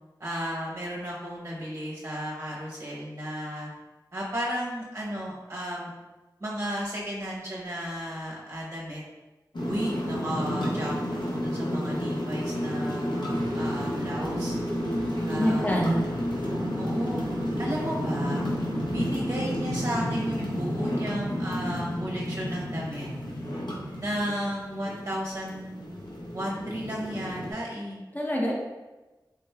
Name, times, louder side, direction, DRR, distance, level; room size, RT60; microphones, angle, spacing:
voice 1, 0.2-3.7 4.1-5.9 6.4-9.0 9.6-11.0 11.2-14.5 15.3-15.6 16.5-17.2 17.6-18.4 18.9-23.1 24.0-26.0 26.2-28.0, equal, 35° right, -5 dB, 0.8 m, -34 dB
sound 1, 9.5-27.5, equal, 80° left, 0.6 m, -31 dB
sound 2, 13.3-20.4, right 1 dB, 90° right, 0.4 m, -42 dB
voice 2, 15.4-16.0 28.1-28.5, equal, 20° left, -2 dB, 0.7 m, -25 dB
3.5 x 3.0 x 2.2 m, 1.1 s
wide cardioid pair, 65°, 8 cm